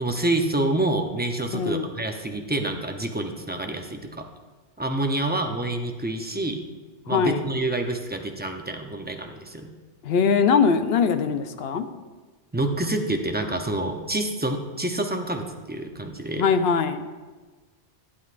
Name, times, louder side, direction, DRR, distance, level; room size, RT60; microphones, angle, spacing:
voice 1, 0.0-4.2 4.8-6.7 7.1-9.7 12.5-16.4, right 2 dB, 15° right, 4 dB, 0.4 m, -27 dB
voice 2, 1.5-1.9 7.1-7.4 10.0-11.9 16.4-17.1, left 6 dB, 70° left, 9 dB, 0.8 m, -21 dB
11.5 x 9.5 x 2.5 m, 1.3 s
omnidirectional pair, 1.1 m